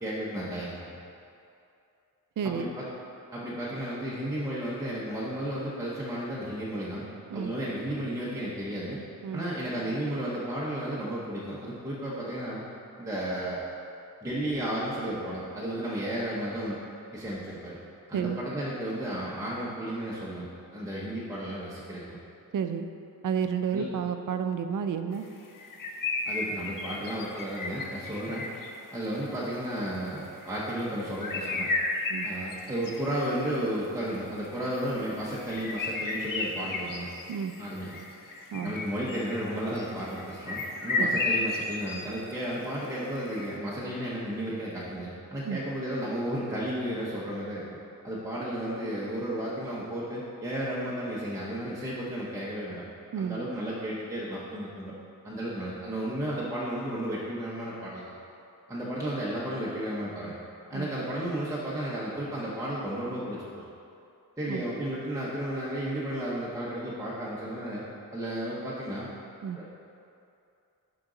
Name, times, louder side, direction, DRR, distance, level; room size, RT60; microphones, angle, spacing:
voice 1, 0.0-1.0 2.4-2.9 3.3-7.0 7.3-9.0 9.3-12.6 13.0-13.6 14.2-16.8 17.1-17.8 18.1-22.2 23.7-23.8 26.3-28.5 28.9-31.7 32.2-37.1 37.6-37.9 38.6-47.7 48.0-52.8 53.2-54.9 55.2-58.1 58.7-60.4 60.7-63.6 64.4-67.8 68.1-69.1 69.5-69.7, right 1 dB, 10° right, -7 dB, 0.8 m, -33 dB
voice 2, 2.4-2.7 7.3-7.5 9.2-9.5 18.1-18.4 22.5-22.9 23.2-25.2 32.1-32.3 37.3-37.5 38.5-38.7 41.0-41.2 45.5-45.6 53.1-53.4 60.7-60.9 64.5-64.6 69.4-69.6, right 7 dB, 60° right, 8 dB, 0.5 m, -31 dB
sound 1, 25.6-28.8 30.4-30.6 31.0-33.6 34.4-42.1 42.3-42.4 43.2-43.6, left 3 dB, 60° left, 0.7 m, -33 dB
11.0 x 3.9 x 3.8 m, 2.6 s
wide cardioid pair, 165°, 36 cm